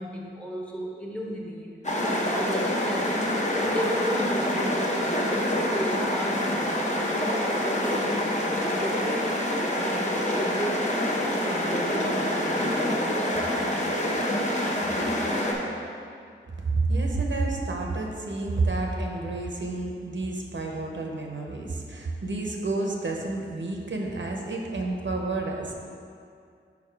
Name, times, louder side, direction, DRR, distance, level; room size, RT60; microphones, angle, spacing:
voice 1, 0.0-1.7 2.3-3.2 3.5-4.9 5.5-12.9, equal, 5° left, -1 dB, 0.9 m, -34 dB
sound 1, 1.8-15.5, left 1 dB, 35° left, 0.8 m, -26 dB
voice 2, 16.6-25.7, right 3 dB, 65° right, 0 dB, 0.7 m, -29 dB
5.3 x 4.9 x 4.6 m, 2.3 s
wide cardioid pair, 75°, 21 cm